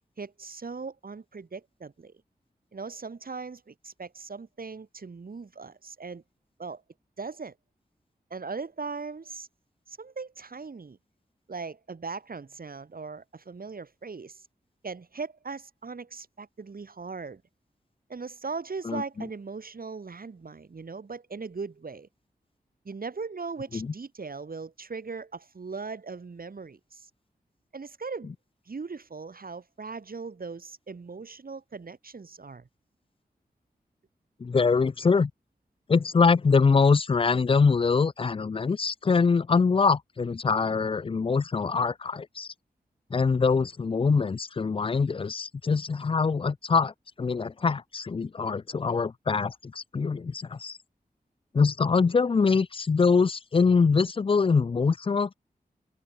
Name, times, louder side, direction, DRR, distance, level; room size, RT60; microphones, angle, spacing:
voice 1, 0.2-2.1 2.7-6.2 6.6-6.8 7.2-7.5 8.3-9.5 9.9-11.0 11.5-14.5 14.8-17.4 18.1-22.1 22.8-27.1 27.7-28.3 28.7-32.7, right 4 dB, 65° right, 5.8 m, -39 dB
voice 2, 34.4-35.3 35.9-42.5 43.1-50.8 51.5-55.3, left 5 dB, 35° left, 0.4 m, -24 dB
wide cardioid pair, 90°, 16 cm